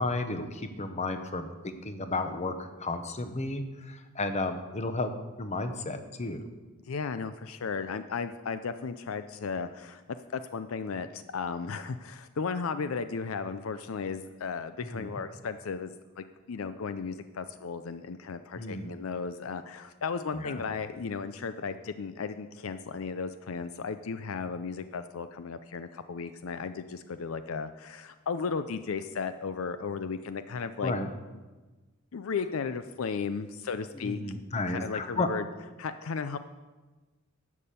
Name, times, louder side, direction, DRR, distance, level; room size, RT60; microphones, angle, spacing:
voice 1, 0.0-5.1 5.4-6.4 14.9-15.2 18.6-18.9 20.3-20.6 30.8-31.1 34.0-35.3, left 2 dB, 35° left, 8 dB, 0.9 m, -33 dB
voice 2, 6.8-30.9 32.1-34.2 34.5-35.4 35.8-36.4, left 5 dB, 70° left, 11 dB, 0.5 m, -35 dB
11.0 x 7.5 x 6.8 m, 1.2 s
head